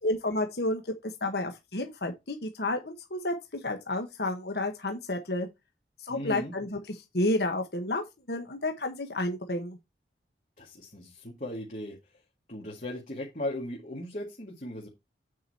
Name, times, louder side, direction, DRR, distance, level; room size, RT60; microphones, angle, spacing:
voice 1, 0.0-3.3 3.6-5.5 6.0-6.8 7.1-9.8, left 1 dB, 70° left, 1.3 m, -31 dB
voice 2, 6.1-6.5 10.6-12.2 12.5-14.9, left 1 dB, 45° left, 2.0 m, -37 dB
8.8 x 4.9 x 4.3 m
head